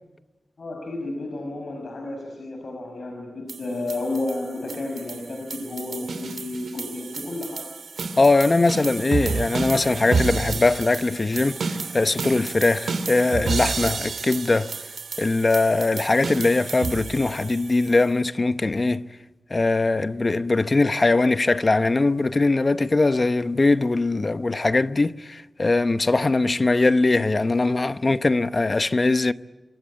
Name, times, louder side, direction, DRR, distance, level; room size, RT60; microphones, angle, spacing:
voice 1, 0.6-7.7, left 2 dB, 65° left, 5.7 m, -32 dB
sound 1, 3.5-18.0, right 4 dB, 80° right, 2.9 m, -31 dB
voice 2, 8.2-14.7 15.2-19.1 19.5-29.3, left 3 dB, 35° left, 0.9 m, -21 dB
28.0 x 24.0 x 8.6 m
wide cardioid pair, 105°, 0 cm